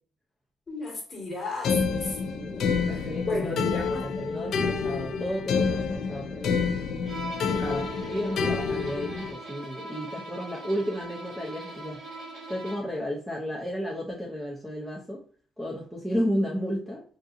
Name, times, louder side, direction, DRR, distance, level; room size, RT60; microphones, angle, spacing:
voice 1, 0.7-4.1, left 2 dB, 30° left, -1 dB, 1.4 m, -34 dB
sound 1, 1.6-9.3, left 5 dB, 60° left, 0.4 m, -28 dB
voice 2, 2.4-3.6 4.0-6.7 7.5-12.0 12.5-15.2 15.6-17.0, equal, 5° right, -3 dB, 0.5 m, -33 dB
Bowed string instrument, 7.1-13.0, right 2 dB, 45° right, 1.5 m, -41 dB
3.7 x 2.6 x 2.5 m, 0.43 s
cardioid pair, 145°, 0 cm